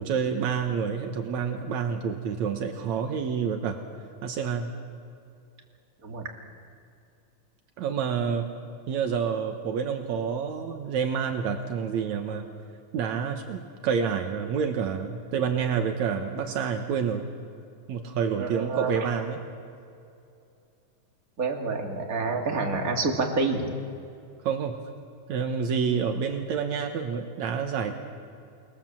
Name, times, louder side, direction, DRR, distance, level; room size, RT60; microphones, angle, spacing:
voice 1, 0.0-3.8 4.2-4.7 7.8-8.5 8.9-12.4 12.9-17.2 17.9-19.4 24.4-24.8 25.3-27.9, right 6 dB, 75° right, 5 dB, 2.5 m, -28 dB
voice 2, 18.4-19.1 21.4-23.7, right 3 dB, 30° right, 1 dB, 2.8 m, -28 dB
27.0 x 20.5 x 7.5 m, 2.6 s
omnidirectional pair, 3.4 m